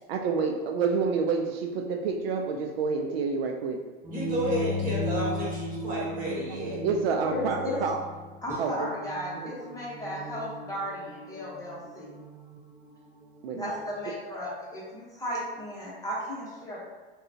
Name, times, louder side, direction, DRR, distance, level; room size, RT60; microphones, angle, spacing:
voice 1, 0.1-3.8 6.7-8.0 8.6-8.9 9.4-9.5 13.4-13.7, right 5 dB, 85° right, 3 dB, 0.5 m, -28 dB
sound 1, 4.0-13.9, left 1 dB, 10° right, 0.6 m, -36 dB
voice 2, 4.1-6.8, equal, 25° right, -5 dB, 1.4 m, -31 dB
voice 3, 7.3-7.8 8.4-12.1 13.6-16.8, equal, 10° left, -7 dB, 1.0 m, -35 dB
3.7 x 2.3 x 2.7 m, 1.3 s
hypercardioid pair, 105°, 30 cm